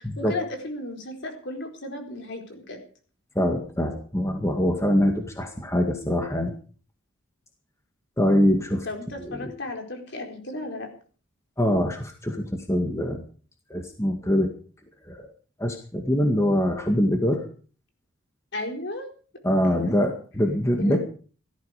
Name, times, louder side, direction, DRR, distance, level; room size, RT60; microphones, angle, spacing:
voice 1, 0.0-2.8 8.8-10.9 18.5-19.1 19.6-19.9 20.7-21.0, left 2 dB, 60° left, 3 dB, 4.4 m, -34 dB
voice 2, 3.4-6.5 8.2-8.9 9.2-9.5 11.6-13.2 13.7-14.5 15.1-15.3 15.6-17.4 19.4-21.0, equal, 15° left, 4 dB, 2.0 m, -23 dB
17.5 x 13.5 x 5.1 m, 0.41 s
head